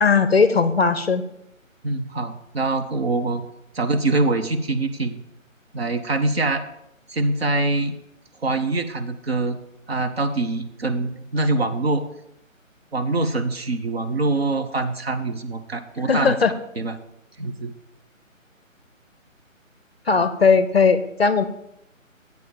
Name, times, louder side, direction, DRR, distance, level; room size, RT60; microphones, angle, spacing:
voice 1, 0.0-1.2 16.1-16.5 20.1-21.4, left 5 dB, 50° left, 12 dB, 0.5 m, -18 dB
voice 2, 1.8-3.4 3.7-5.2 5.7-6.6 7.1-7.9 8.4-9.6 9.9-12.0 12.9-16.4 16.8-17.0 17.4-17.7, right 2 dB, 50° right, 8 dB, 0.7 m, -24 dB
8.2 x 4.4 x 7.0 m, 0.82 s
hypercardioid pair, 170°, 40 cm